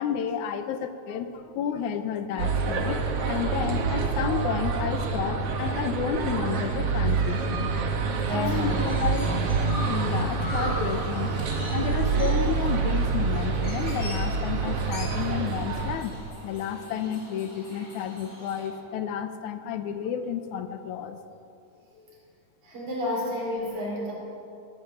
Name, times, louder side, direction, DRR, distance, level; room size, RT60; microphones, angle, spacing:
voice 1, 0.0-7.7 8.3-16.1 16.4-21.2 21.9-22.1, left 8 dB, 80° left, 9 dB, 2.2 m, -31 dB
sound 1, 2.4-16.0, right 4 dB, 60° right, 2.1 m, -27 dB
Chirp tweet, 8.1-18.7, equal, 30° left, 3.7 m, -41 dB
voice 2, 8.2-8.7 22.6-24.1, left 1 dB, 75° right, -4 dB, 5.9 m, -31 dB
16.0 x 13.0 x 7.1 m, 2.6 s
omnidirectional pair, 3.5 m